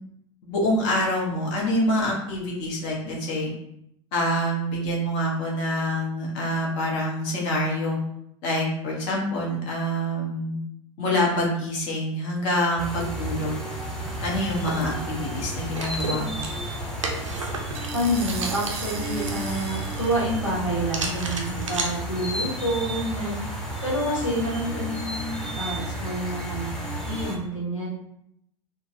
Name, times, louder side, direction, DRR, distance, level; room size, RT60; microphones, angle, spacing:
voice 1, 0.4-3.5 4.1-8.0 8.4-10.6 11.0-13.5 14.2-16.4, equal, 45° left, -3 dB, 1.0 m, -26 dB
sound 1, 12.5-12.9 16.4-16.5 17.7-20.2, right 5 dB, 35° right, 0.6 m, -38 dB
sound 2, 12.8-27.4, right 1 dB, 5° left, 0.8 m, -32 dB
sound 3, 14.0-21.9, right 3 dB, 80° right, 0.5 m, -36 dB
voice 2, 17.9-23.4 23.8-26.7 27.0-27.9, equal, 90° left, -5 dB, 0.8 m, -28 dB
3.7 x 2.1 x 2.7 m, 0.79 s
figure-of-eight pair, 85°, 16 cm